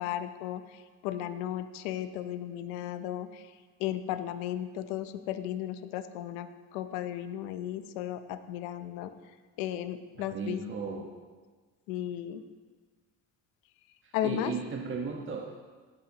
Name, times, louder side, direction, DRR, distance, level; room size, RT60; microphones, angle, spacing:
voice 1, 0.0-3.5 3.8-9.1 9.6-10.6 11.9-12.4 14.1-14.5, left 11 dB, 90° left, 11 dB, 0.8 m, -35 dB
voice 2, 10.2-11.1 14.0-15.6, right 4 dB, 35° right, 0 dB, 1.3 m, -36 dB
16.5 x 8.8 x 3.0 m, 1.4 s
supercardioid pair, 90°, 35 cm